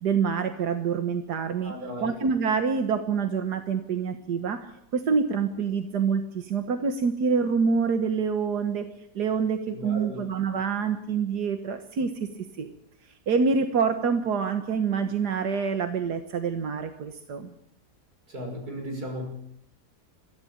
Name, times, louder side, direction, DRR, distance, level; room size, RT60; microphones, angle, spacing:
voice 1, 0.0-1.7 2.0-4.7 4.9-8.9 9.2-12.3 12.6-12.7 13.3-17.5, right 5 dB, 85° right, 7 dB, 1.9 m, -26 dB
voice 2, 1.6-2.1 9.7-10.2 18.3-19.3, equal, 70° right, 3 dB, 6.4 m, -35 dB
22.5 x 15.0 x 8.8 m, 0.75 s
omnidirectional pair, 1.7 m